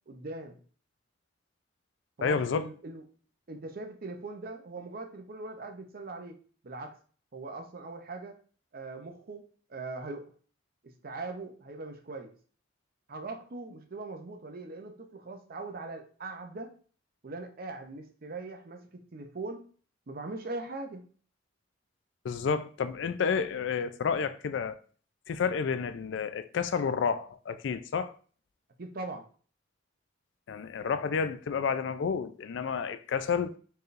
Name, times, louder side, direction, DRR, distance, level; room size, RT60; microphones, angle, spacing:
voice 1, 0.1-0.6 2.2-3.0 3.5-6.4 6.6-7.0 7.3-8.4 8.7-9.4 9.7-10.3 10.8-12.3 13.1-16.7 17.2-19.6 20.1-21.0 28.8-29.3, right 3 dB, 50° right, 0.6 m, -40 dB
voice 2, 2.2-2.7 22.2-24.8 25.3-28.1 30.5-33.5, left 6 dB, 65° left, 0.3 m, -30 dB
4.5 x 3.2 x 2.5 m
head